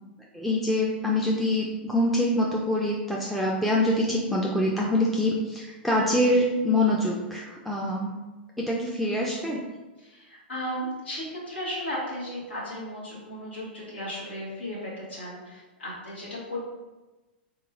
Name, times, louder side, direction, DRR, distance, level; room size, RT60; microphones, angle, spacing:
voice 1, 0.3-8.2 8.6-9.6, left 1 dB, ahead, -4 dB, 0.4 m, -25 dB
voice 2, 10.0-16.7, equal, 90° left, -7 dB, 1.5 m, -35 dB
3.6 x 3.0 x 2.4 m, 1.1 s
hypercardioid pair, 115°, 6 cm